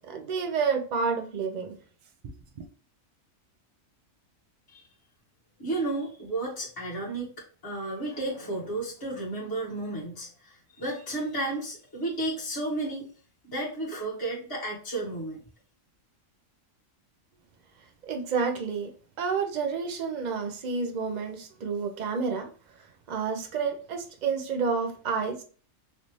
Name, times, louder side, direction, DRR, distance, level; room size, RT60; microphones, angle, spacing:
voice 1, 0.0-1.8 2.2-2.7 18.0-18.9 19.2-22.5 23.1-25.4, right 5 dB, 55° right, 0.5 m, -30 dB
voice 2, 5.6-7.3 7.6-13.1 13.4-15.4, right 2 dB, 15° left, 1.2 m, -32 dB
3.2 x 2.6 x 3.0 m
omnidirectional pair, 1.4 m